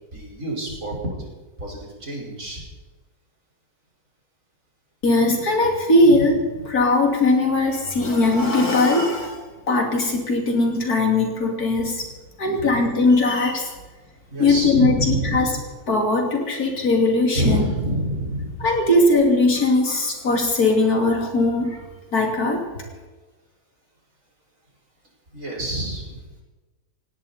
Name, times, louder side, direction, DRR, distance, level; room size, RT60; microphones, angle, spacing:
voice 1, 0.1-1.3 1.6-2.6 6.1-6.2 6.5-6.7 11.8-11.9 12.4-12.8 14.3-15.6 17.3-18.7 25.3-26.4, right 1 dB, 55° right, -2 dB, 5.6 m, -27 dB
voice 2, 5.0-12.0 12.4-13.7 14.4-15.5 15.9-17.6 18.6-21.8 22.1-22.7, left 2 dB, 75° left, 2 dB, 3.3 m, -19 dB
19.5 x 16.5 x 4.3 m, 1.2 s
omnidirectional pair, 1.6 m